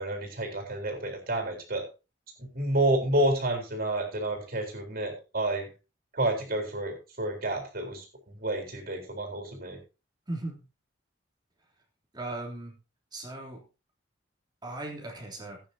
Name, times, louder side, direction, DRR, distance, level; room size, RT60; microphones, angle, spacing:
voice 1, 0.0-1.8 2.4-5.7 6.1-9.8, right 1 dB, 55° right, 3 dB, 3.9 m, -30 dB
voice 2, 10.3-10.6 12.1-12.7 13.1-13.6 14.6-15.6, right 2 dB, 25° right, 0 dB, 3.1 m, -37 dB
17.0 x 9.2 x 2.8 m, 0.30 s
head